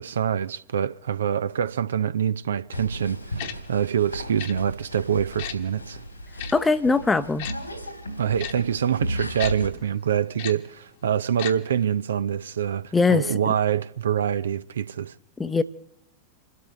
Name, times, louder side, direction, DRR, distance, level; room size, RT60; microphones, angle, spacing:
voice 1, 0.0-6.0 8.2-15.1, right 8 dB, 65° right, 0.5 m, -25 dB
sound 1, 2.7-9.7, equal, 85° left, 3.2 m, -35 dB
Tick-tock, 3.4-3.5 4.4-4.5 5.4-5.6 6.4-6.5 7.4-7.5 8.4-8.5 9.4-9.5 10.4-10.5 11.4-11.5 11.8-11.9, left 11 dB, 55° left, 1.3 m, -33 dB
voice 2, 6.5-7.5 12.9-13.5 15.4-15.6, left 4 dB, 10° left, 0.8 m, -21 dB
29.0 x 12.5 x 3.2 m
figure-of-eight pair, 90°, 0 cm